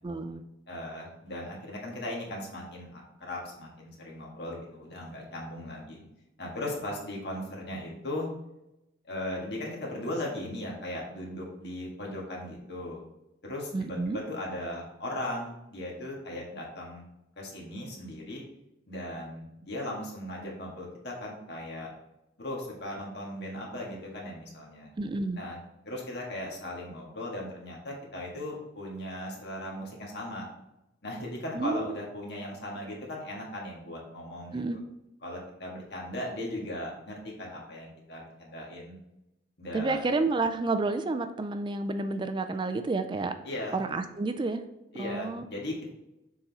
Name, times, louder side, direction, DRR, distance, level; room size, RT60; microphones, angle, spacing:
voice 1, 0.0-0.4 13.7-14.2 25.0-25.4 31.5-31.8 34.5-34.8 39.7-43.3 43.7-44.6 45.0-45.5, right 3 dB, 25° right, 9 dB, 0.3 m, -30 dB
voice 2, 0.7-6.0 6.4-8.3 9.0-13.0 13.4-17.1 17.4-18.4 18.9-21.9 22.4-24.9 25.3-25.6 25.9-30.5 31.0-34.6 35.2-39.0 39.6-40.1 43.4-43.8 44.9-45.9, left 1 dB, 60° left, -2 dB, 1.7 m, -38 dB
7.0 x 3.8 x 4.0 m, 0.90 s
head